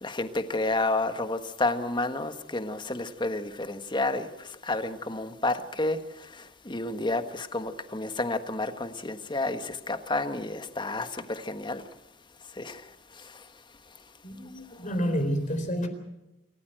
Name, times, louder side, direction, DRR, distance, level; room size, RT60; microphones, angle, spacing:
voice 1, 0.0-11.8 12.6-12.8 13.2-13.4, left 2 dB, 25° left, 1.4 m, -30 dB
voice 2, 14.2-15.9, equal, 40° left, 4.0 m, -29 dB
28.0 x 15.0 x 7.8 m
head